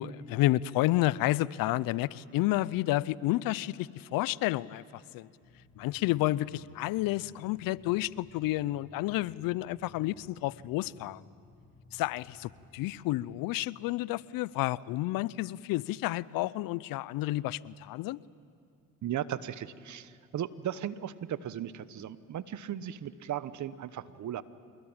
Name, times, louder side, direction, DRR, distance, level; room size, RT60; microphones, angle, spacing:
voice 1, 0.0-5.3 5.8-11.2 11.9-18.2, left 17 dB, 70° left, 21 dB, 0.6 m, -30 dB
sound 1, 5.4-13.4, left 3 dB, 45° left, 4.9 m, -58 dB
voice 2, 19.0-24.4, right 10 dB, 55° right, 15 dB, 1.1 m, -36 dB
26.5 x 21.5 x 8.9 m, 2.4 s
supercardioid pair, 65°, 35 cm